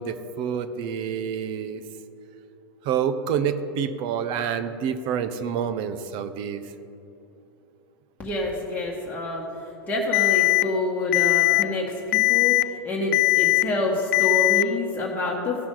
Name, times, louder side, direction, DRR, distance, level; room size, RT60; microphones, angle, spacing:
voice 1, 0.0-1.8 2.8-6.6, right 7 dB, 45° right, 11 dB, 0.8 m, -28 dB
voice 2, 8.2-15.7, left 2 dB, 15° left, -5 dB, 1.6 m, -27 dB
Alarm, 10.1-10.6 11.1-11.6 12.1-12.6 13.1-13.6 14.1-14.6, left 23 dB, 60° left, 0.4 m, -19 dB
16.5 x 5.9 x 3.9 m, 2.8 s
hypercardioid pair, 105°, 12 cm